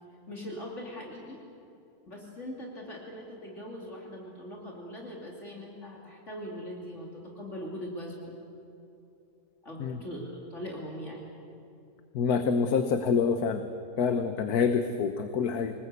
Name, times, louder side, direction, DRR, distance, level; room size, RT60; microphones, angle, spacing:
voice 1, 0.3-1.4 2.1-8.3 9.6-11.3, equal, 45° left, -1 dB, 3.2 m, -41 dB
voice 2, 12.1-13.7 14.0-15.7, left 5 dB, 75° left, 8 dB, 1.5 m, -26 dB
25.5 x 20.0 x 8.3 m, 2.8 s
omnidirectional pair, 1.7 m